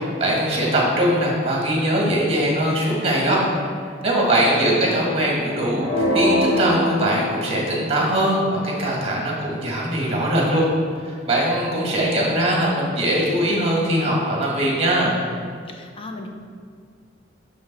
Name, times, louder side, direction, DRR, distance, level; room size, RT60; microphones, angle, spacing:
voice 1, 0.0-3.7 4.0-10.6 11.0-15.2, right 1 dB, 35° right, -3 dB, 1.5 m, -21 dB
voice 2, 4.1-4.9 15.7-16.3, left 1 dB, 30° left, 3 dB, 0.6 m, -36 dB
sound 1, 5.8-7.9, left 1 dB, 65° left, 1.6 m, -22 dB
6.1 x 5.1 x 4.0 m, 2.1 s
head